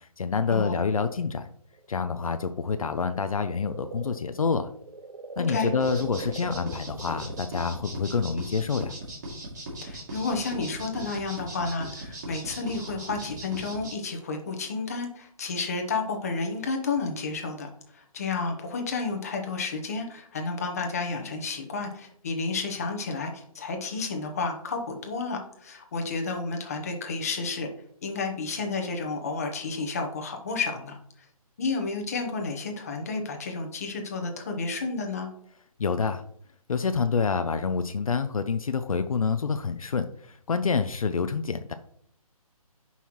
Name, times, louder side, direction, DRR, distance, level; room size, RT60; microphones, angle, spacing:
voice 1, 0.0-1.5 1.9-4.7 5.4-8.9 35.8-36.2 36.7-41.7, left 5 dB, 65° left, 9 dB, 0.6 m, -27 dB
sound 1, 1.7-7.4, right 3 dB, 65° right, 0.8 m, -41 dB
sound 2, 5.8-13.9, right 1 dB, 30° right, 2.5 m, -38 dB
voice 2, 9.8-27.7 28.0-31.0 31.6-35.3, left 4 dB, 25° left, 3 dB, 1.0 m, -31 dB
10.0 x 5.6 x 3.1 m, 0.65 s
hypercardioid pair, 175°, 19 cm